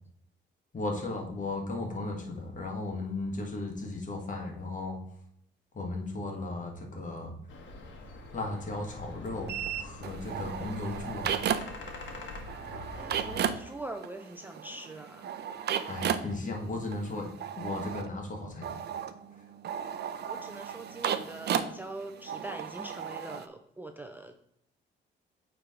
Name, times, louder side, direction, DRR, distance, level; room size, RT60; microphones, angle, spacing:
voice 1, 0.7-5.0 5.7-7.3 8.3-11.3 15.9-17.3 17.5-18.7, left 2 dB, 40° left, 1 dB, 1.6 m, -36 dB
sound 1, 7.5-13.6, left 2 dB, 70° left, 1.3 m, -44 dB
sound 2, 9.5-11.9 12.2-23.5, right 8 dB, 55° right, 0.5 m, -35 dB
voice 2, 12.9-15.3 20.3-24.3, right 2 dB, 10° right, 5 dB, 0.5 m, -43 dB
8.8 x 3.4 x 3.7 m, 0.71 s
cardioid pair, 90°, 20 cm